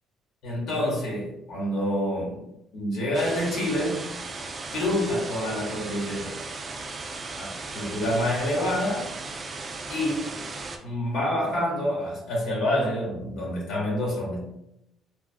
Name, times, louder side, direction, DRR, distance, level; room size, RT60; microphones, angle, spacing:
voice 1, 0.4-2.5 2.7-4.1 4.7-6.3 7.4-9.1 9.9-10.3 10.8-14.4, left 1 dB, 60° left, -4 dB, 1.0 m, -27 dB
sound 1, 3.1-10.8, right 3 dB, 25° right, 0.3 m, -36 dB
3.0 x 2.4 x 2.4 m, 0.83 s
cardioid pair, 140°, 0 cm